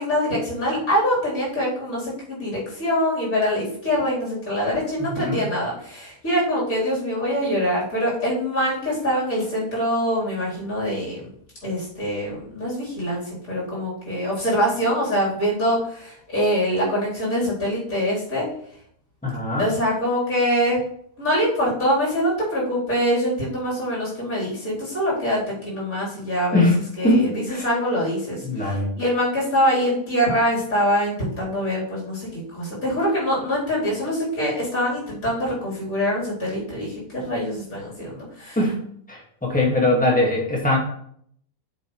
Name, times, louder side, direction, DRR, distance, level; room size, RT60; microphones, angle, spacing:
voice 1, 0.0-11.2 11.6-18.5 19.5-20.8 21.2-26.6 27.0-38.6, equal, 55° left, -7 dB, 4.1 m, -24 dB
voice 2, 5.0-5.4 19.2-19.7 26.5-26.8 27.0-27.6 28.4-28.9 38.5-38.8 39.1-40.8, left 1 dB, 5° left, -2 dB, 1.6 m, -21 dB
8.4 x 6.7 x 3.1 m, 0.67 s
omnidirectional pair, 1.8 m